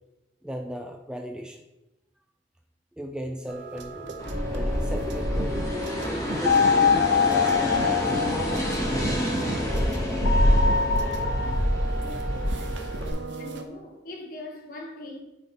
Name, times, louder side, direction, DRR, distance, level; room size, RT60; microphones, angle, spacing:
voice 1, 0.4-1.6 3.0-4.2 4.5-5.6 6.0-9.5, equal, 5° right, 0.4 m, -37 dB
sound 1, 3.5-13.7, right 2 dB, 80° right, 0.9 m, -36 dB
sound 2, 4.2-13.1, equal, 20° left, 1.3 m, -26 dB
sound 3, 6.4-9.0 10.2-11.6, left 6 dB, 65° left, 0.3 m, -23 dB
voice 2, 12.0-12.9 13.4-15.2, left 2 dB, 50° left, 1.3 m, -41 dB
9.0 x 3.9 x 4.2 m
head